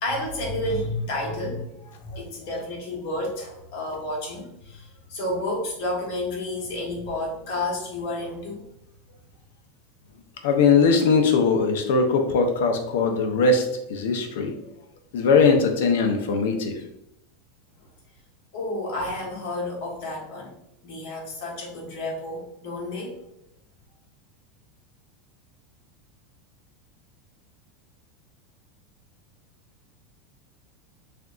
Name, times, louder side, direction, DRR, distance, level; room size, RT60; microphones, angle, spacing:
voice 1, 0.0-8.7 18.5-20.6 20.8-23.2, left 1 dB, 55° left, -2 dB, 1.4 m, -31 dB
voice 2, 2.1-2.5 10.4-14.5 15.1-16.8, left 4 dB, 80° left, 5 dB, 0.7 m, -21 dB
5.8 x 2.8 x 2.5 m, 0.82 s
supercardioid pair, 170°, 0 cm